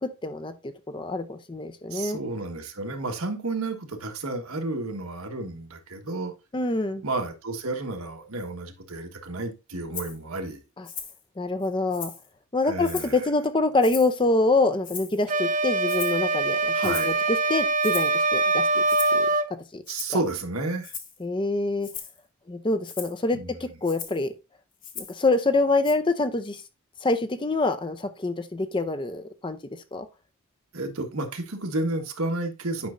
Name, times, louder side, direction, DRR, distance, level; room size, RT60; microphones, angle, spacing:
voice 1, 0.0-2.2 6.5-7.0 10.8-10.9 11.4-12.1 12.5-18.8 19.1-19.8 21.2-21.9 22.5-24.3 25.0-26.6 27.0-29.6 29.9-30.1, left 2 dB, 20° left, 0.5 m, -26 dB
voice 2, 1.9-6.3 7.0-10.6 12.6-13.2 16.7-17.1 19.9-20.9 23.3-23.5 30.7-32.9, right 2 dB, 90° right, 1.4 m, -31 dB
Rattle (instrument), 9.9-10.2 10.8-11.2 11.6-12.3 12.8-13.2 13.8-14.2 14.8-15.3 15.9-16.2 16.8-17.2 17.8-18.2 18.9-19.2 19.8-20.2 20.8-21.2 21.8-22.2 22.8-23.2 23.8-24.2 24.8-25.2 25.8-25.9, left 7 dB, 40° left, 1.1 m, -38 dB
sound 1, 15.3-19.5, right 3 dB, 35° right, 0.5 m, -23 dB
9.3 x 5.4 x 2.6 m
head